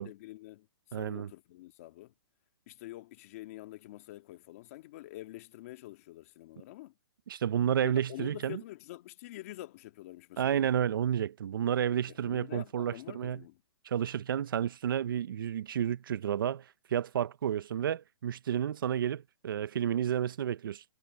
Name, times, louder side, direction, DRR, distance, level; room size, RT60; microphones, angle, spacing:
voice 1, 0.0-2.1 2.7-6.9 7.8-10.6 12.1-13.6, left 17 dB, 35° left, 1.9 m, -47 dB
voice 2, 0.9-1.3 7.3-8.6 10.4-13.4 13.8-20.8, right 9 dB, 60° right, 0.7 m, -31 dB
hypercardioid pair, 165°, 13 cm